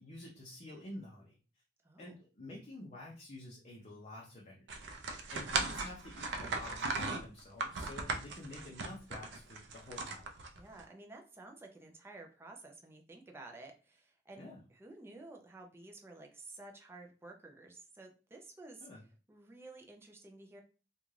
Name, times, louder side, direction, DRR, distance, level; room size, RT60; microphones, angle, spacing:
voice 1, 0.0-1.4 2.0-4.8 5.3-10.3 14.4-14.6 18.8-19.0, left 1 dB, 40° left, -4 dB, 0.6 m, -49 dB
voice 2, 1.8-2.2 10.5-14.4 14.7-18.9 19.3-20.6, right 2 dB, 15° right, 1 dB, 0.4 m, -52 dB
sound 1, 4.7-10.8, right 3 dB, 75° right, 0.4 m, -38 dB
2.5 x 2.2 x 3.1 m, 0.35 s
head